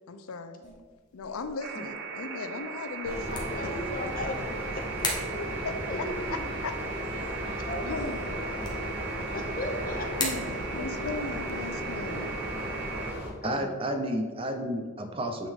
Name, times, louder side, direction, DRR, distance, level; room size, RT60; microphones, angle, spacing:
voice 1, 0.1-0.6 1.1-3.4 3.6-3.7 5.6-6.8 7.0-7.3 7.9-8.4 10.2-12.3, left 3 dB, 90° left, 8 dB, 0.5 m, -37 dB
sound 1, 0.6-14.8, left 2 dB, 20° left, 1.0 m, -42 dB
sound 2, 1.6-13.1, right 4 dB, 60° right, 1.0 m, -38 dB
sound 3, 3.0-13.3, equal, 5° right, 1.4 m, -36 dB
voice 2, 3.3-5.1 5.9-6.6 7.2-9.0 9.3-10.3 10.7-10.8 13.4-14.1, left 1 dB, 40° left, 4 dB, 0.8 m, -38 dB
voice 3, 13.4-15.5, equal, 25° right, 6 dB, 0.6 m, -31 dB
8.7 x 3.9 x 3.5 m, 1.5 s
head